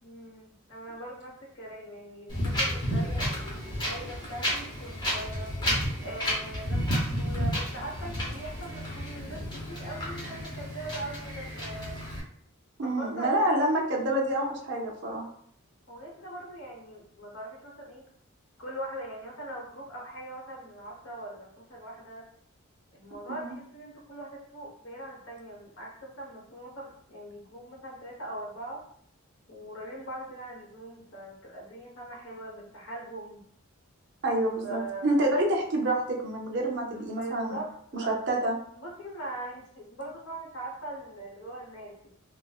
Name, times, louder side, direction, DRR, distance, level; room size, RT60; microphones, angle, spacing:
voice 1, 0.0-5.5 6.0-12.0 12.8-13.6 15.9-18.0 18.6-22.3 22.9-28.8 29.5-33.4 34.6-35.3 36.9-38.1 38.7-42.1, right 1 dB, 65° left, -2 dB, 0.9 m, -41 dB
Wind, 2.3-12.2, equal, 20° left, 0.7 m, -31 dB
voice 2, 12.8-15.3 23.3-23.5 34.2-37.6 37.9-38.6, right 1 dB, 55° right, -1 dB, 0.6 m, -27 dB
3.2 x 2.0 x 2.3 m, 0.63 s
head